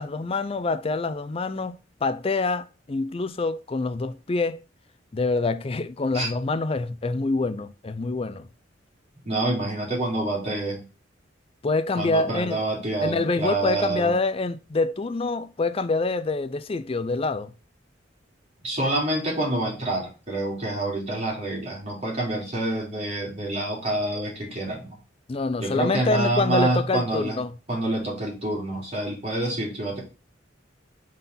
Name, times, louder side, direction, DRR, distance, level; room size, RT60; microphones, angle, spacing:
voice 1, 0.0-4.6 5.1-8.5 11.6-12.6 13.0-17.5 25.3-27.5, left 3 dB, 30° left, 0.4 m, -26 dB
voice 2, 9.2-10.8 12.0-14.1 18.6-25.0 25.6-27.4 27.7-30.0, right 2 dB, 35° right, 3.2 m, -27 dB
5.5 x 4.0 x 5.5 m
head